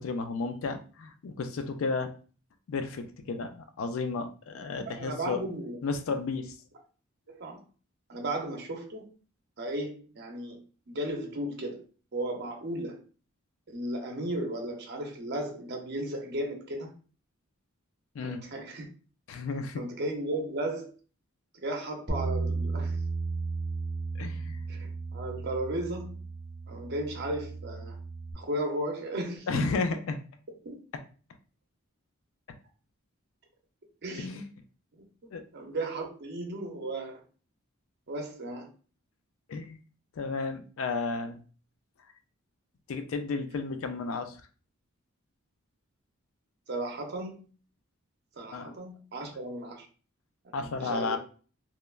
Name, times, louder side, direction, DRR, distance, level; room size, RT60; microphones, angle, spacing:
voice 1, 0.0-2.1 2.7-5.4 5.8-6.6 18.1-18.4 19.3-19.8 24.2-24.6 29.5-30.2 34.2-34.5 35.3-35.4 39.5-39.8 40.2-41.4 42.9-44.4 48.5-48.7 50.5-51.2, left 4 dB, 65° left, 8 dB, 0.4 m, -33 dB
voice 2, 4.8-5.8 7.3-7.6 8.1-9.1 9.6-10.6 10.9-11.8 12.1-13.0 13.7-16.9 18.2-18.9 19.8-20.9 21.5-23.0 24.7-26.2 26.7-28.0 28.3-29.7 30.6-30.8 34.0-34.4 35.0-35.1 35.5-37.2 38.1-38.7 46.7-47.4 48.3-49.9 50.4-51.2, right 1 dB, 50° right, 2 dB, 0.6 m, -35 dB
Bass guitar, 22.1-28.3, right 3 dB, 15° left, 0.5 m, -34 dB
3.0 x 2.2 x 2.3 m, 0.39 s
head